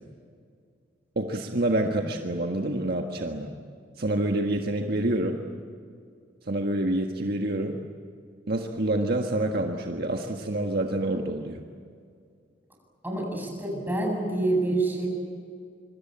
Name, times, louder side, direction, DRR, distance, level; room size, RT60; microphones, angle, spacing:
voice 1, 1.1-3.5 4.0-5.4 6.4-7.7 8.5-11.6, right 1 dB, 55° right, 3 dB, 1.6 m, -27 dB
voice 2, 13.0-15.1, right 2 dB, 10° right, -1 dB, 7.8 m, -27 dB
25.0 x 25.0 x 8.8 m, 2.3 s
head